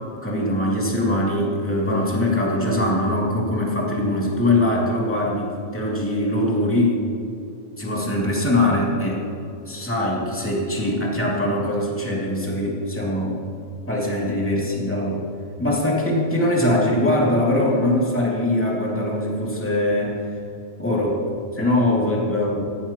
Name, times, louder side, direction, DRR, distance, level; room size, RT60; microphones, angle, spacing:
voice 1, 0.2-7.0 7.8-9.3 9.7-13.4 13.9-15.2 15.6-20.2 20.8-21.2 21.5-22.6, left 1 dB, 5° left, -5 dB, 1.8 m, -22 dB
18.0 x 14.5 x 3.0 m, 2.7 s
omnidirectional pair, 4.0 m